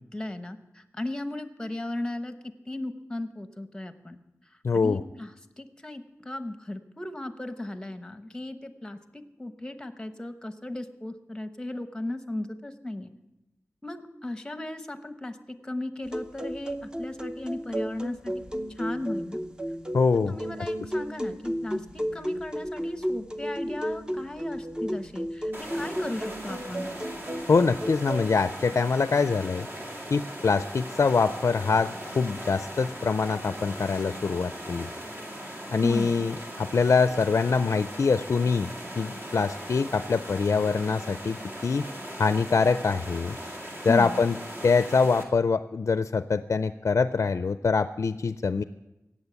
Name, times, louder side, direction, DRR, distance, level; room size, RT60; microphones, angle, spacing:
voice 1, 0.1-2.3 2.7-4.2 4.7-5.3 5.6-13.1 13.8-18.3 18.8-19.4 20.3-26.9 35.8-36.2 43.9-44.2, left 1 dB, 10° left, 9 dB, 1.0 m, -36 dB
voice 2, 4.6-5.0 19.9-20.3 27.5-29.7 30.1-34.9 35.7-41.4 41.6-41.8 42.2-43.4 43.8-44.4 44.6-48.6, left 4 dB, 60° left, 12 dB, 0.4 m, -24 dB
sound 1, 16.0-28.4, equal, 15° right, 0.7 m, -33 dB
sound 2, 25.5-45.2, equal, 45° right, 2.0 m, -39 dB
17.5 x 7.4 x 7.0 m, 0.96 s
wide cardioid pair, 105°, 5 cm